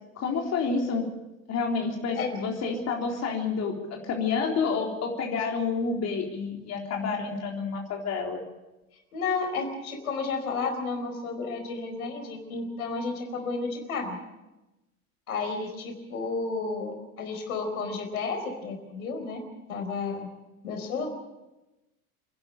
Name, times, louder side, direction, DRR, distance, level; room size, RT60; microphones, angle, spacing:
voice 1, 0.2-1.0 1.5-3.7 4.0-8.4, left 5 dB, 35° left, 0 dB, 3.8 m, -29 dB
voice 2, 9.1-14.2 15.3-19.4 19.7-20.3 20.6-21.1, left 4 dB, 70° left, 4 dB, 4.6 m, -32 dB
27.5 x 11.5 x 8.8 m, 1.0 s
figure-of-eight pair, 80°, 44 cm